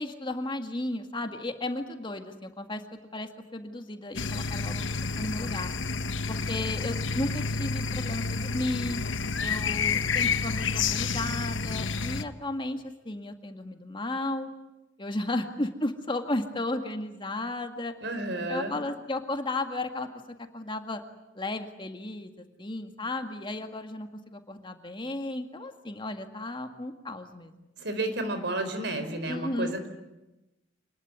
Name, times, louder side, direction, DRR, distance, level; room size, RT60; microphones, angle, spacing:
voice 1, 0.0-2.8 3.1-5.7 6.3-9.0 9.4-14.5 15.0-17.9 18.5-20.1 20.5-21.0 21.4-27.5 29.3-29.9, left 2 dB, 25° left, 6 dB, 2.0 m, -34 dB
sound 1, 4.2-12.2, left 5 dB, 85° left, 1.1 m, -29 dB
voice 2, 18.0-18.8 27.8-29.9, right 2 dB, 65° right, 9 dB, 4.5 m, -31 dB
27.0 x 20.5 x 9.6 m, 0.97 s
head